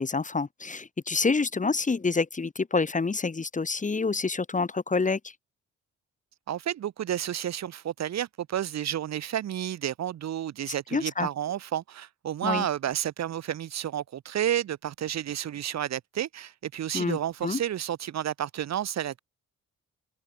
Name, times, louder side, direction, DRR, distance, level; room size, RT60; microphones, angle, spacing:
voice 1, 0.0-5.3 10.7-11.3 12.4-12.7 16.9-17.6, left 4 dB, 25° left, 1.3 m, -27 dB
voice 2, 6.5-19.2, right 11 dB, 60° right, 0.9 m, -31 dB
cardioid pair, 80°, 30 cm